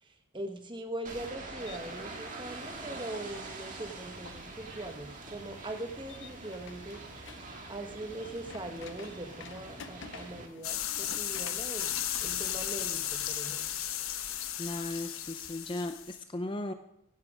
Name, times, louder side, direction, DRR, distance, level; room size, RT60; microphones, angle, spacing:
voice 1, 0.0-7.3 7.7-11.9 12.2-13.7, right 1 dB, 20° right, 5 dB, 1.2 m, -41 dB
sound 1, 1.0-10.5, right 2 dB, 35° right, 2.0 m, -44 dB
sound 2, 1.6-14.1, left 5 dB, 55° left, 0.8 m, -52 dB
sound 3, 10.6-16.2, left 11 dB, 75° left, 1.1 m, -35 dB
voice 2, 14.6-16.7, left 1 dB, 20° left, 8 dB, 0.6 m, -36 dB
16.0 x 10.5 x 3.7 m, 0.81 s
head